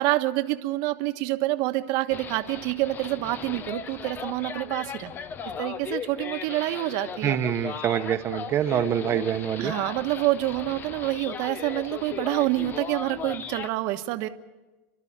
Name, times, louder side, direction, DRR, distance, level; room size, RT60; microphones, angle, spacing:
voice 1, 0.0-5.1 5.6-7.4 9.6-14.3, right 17 dB, 55° right, 8 dB, 1.3 m, -27 dB
sound 1, 2.1-13.7, left 7 dB, 25° left, 0.8 m, -37 dB
voice 2, 7.2-9.7, right 10 dB, 35° right, 8 dB, 1.1 m, -25 dB
28.5 x 12.5 x 8.8 m, 1.2 s
supercardioid pair, 140°, 7 cm